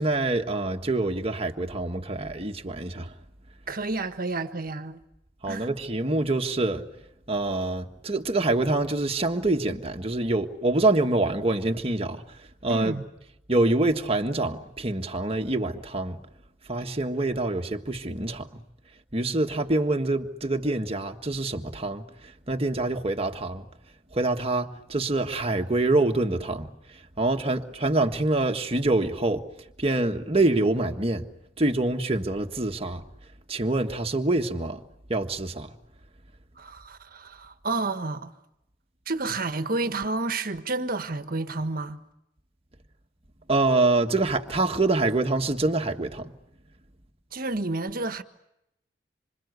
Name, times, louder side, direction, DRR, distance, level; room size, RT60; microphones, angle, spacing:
voice 1, 0.0-3.1 5.4-6.8 7.3-12.2 12.6-13.0 13.5-16.2 16.7-18.6 19.1-22.0 22.5-23.6 24.1-26.7 27.2-29.4 29.8-31.3 31.6-33.0 33.5-34.8 35.1-35.7 43.5-46.3, right 2 dB, 30° right, 1.6 m, -25 dB
voice 2, 3.7-5.0 5.5-5.7 12.7-13.1 36.6-38.3 39.1-42.0 47.3-48.2, right 3 dB, 50° right, 1.5 m, -30 dB
26.5 x 26.5 x 8.2 m
head